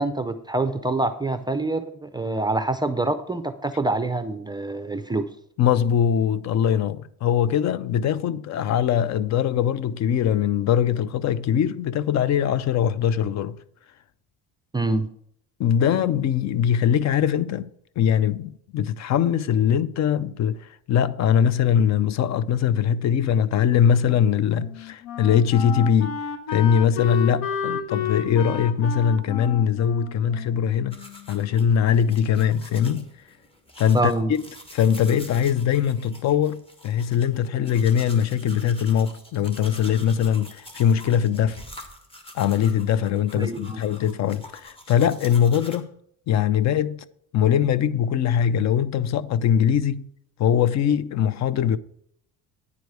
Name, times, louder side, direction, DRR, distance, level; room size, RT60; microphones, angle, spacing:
voice 1, 0.0-5.3 14.7-15.1 33.9-34.3 43.3-43.8, right 2 dB, 10° right, 0.4 m, -25 dB
voice 2, 5.6-13.6 15.6-17.7 18.0-26.2 26.5-31.0 31.3-33.1 33.8-34.1 34.7-41.6 42.3-45.9 46.3-47.0 47.3-50.1 50.4-51.8, left 8 dB, 50° left, 0.5 m, -21 dB
Wind instrument woodwind instrument, 24.5-31.4, left 7 dB, 75° left, 1.0 m, -32 dB
sound 1, 30.9-45.8, left 1 dB, 15° left, 1.4 m, -46 dB
9.6 x 4.6 x 6.7 m
cardioid pair, 110°, 35 cm